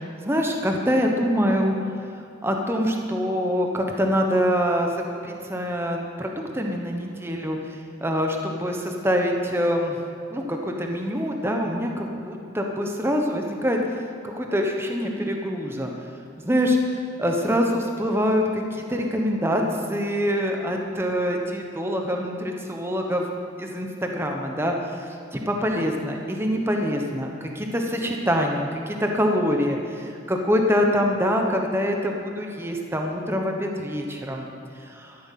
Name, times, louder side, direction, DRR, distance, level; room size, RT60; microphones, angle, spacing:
voice 1, 0.2-1.7 2.4-10.0 10.3-13.8 14.2-15.9 16.5-16.8 17.2-19.6 19.9-23.3 23.6-34.5 34.8-35.2, equal, 10° right, 2 dB, 1.0 m, -25 dB
13.0 x 11.0 x 5.9 m, 2.5 s
head